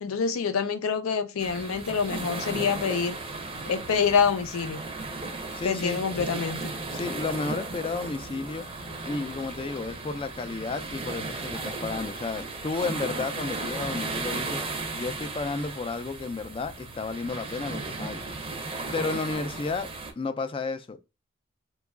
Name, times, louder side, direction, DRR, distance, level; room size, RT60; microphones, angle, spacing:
voice 1, 0.0-3.2 3.6-4.8 5.6-6.6, left 6 dB, 85° left, 0.5 m, -26 dB
sound 1, 1.4-20.1, right 3 dB, 25° right, 0.6 m, -35 dB
voice 2, 5.5-6.0 6.9-8.6 9.0-18.2 18.9-19.9 20.2-21.0, left 3 dB, 25° left, 0.3 m, -32 dB
3.0 x 2.3 x 3.4 m
head